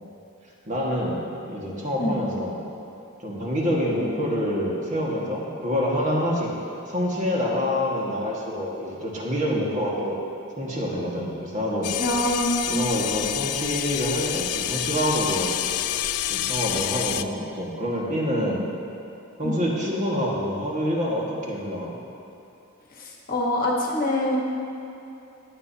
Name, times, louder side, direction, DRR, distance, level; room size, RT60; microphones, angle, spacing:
voice 1, 0.7-1.2 1.4-2.6 3.2-6.5 6.9-10.2 10.6-11.9 12.7-15.6 16.3-18.7 19.4-22.0, equal, 35° right, -4 dB, 1.7 m, -26 dB
sound 1, 11.8-17.2, left 12 dB, 85° left, 0.4 m, -28 dB
voice 2, 12.0-12.8 19.4-19.6 23.0-24.4, left 1 dB, 40° left, -2 dB, 1.3 m, -25 dB
16.0 x 10.0 x 2.8 m, 2.8 s
head